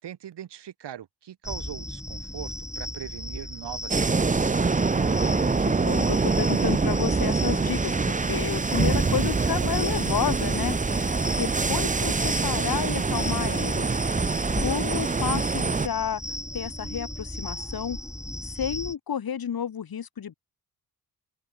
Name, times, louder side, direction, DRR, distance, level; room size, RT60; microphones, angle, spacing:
voice 1, 0.0-4.6, right 10 dB, 80° right, 5.2 m, -41 dB
sound 1, 1.4-18.9, left 1 dB, 5° left, 4.2 m, -36 dB
sound 2, 3.9-15.9, right 4 dB, 20° right, 0.7 m, -25 dB
voice 2, 4.9-13.9 14.6-16.2 16.5-18.0 18.5-20.3, left 8 dB, 60° left, 2.1 m, -31 dB
open air
cardioid pair, 60°, 40 cm